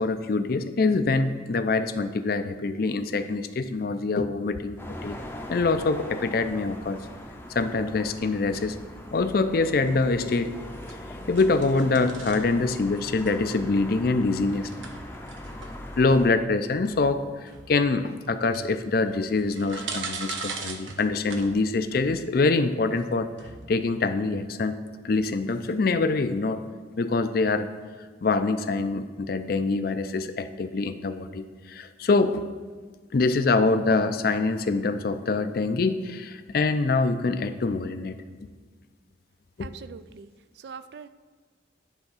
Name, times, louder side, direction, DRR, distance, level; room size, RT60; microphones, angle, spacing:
voice 1, 0.0-5.2 5.5-7.0 7.5-8.8 9.1-10.5 11.3-14.7 16.0-23.3 23.7-24.8 25.0-26.6 27.0-27.7 28.2-32.4 33.1-38.2 39.6-39.7, left 3 dB, 50° left, 10 dB, 0.4 m, -25 dB
sound 1, 4.8-16.3, left 1 dB, 10° left, 0.6 m, -40 dB
sound 2, 8.5-24.7, right 4 dB, 80° right, 0.8 m, -43 dB
voice 2, 39.6-40.3 40.6-41.1, right 6 dB, 60° right, 14 dB, 0.3 m, -42 dB
10.5 x 3.5 x 5.6 m, 1.5 s
head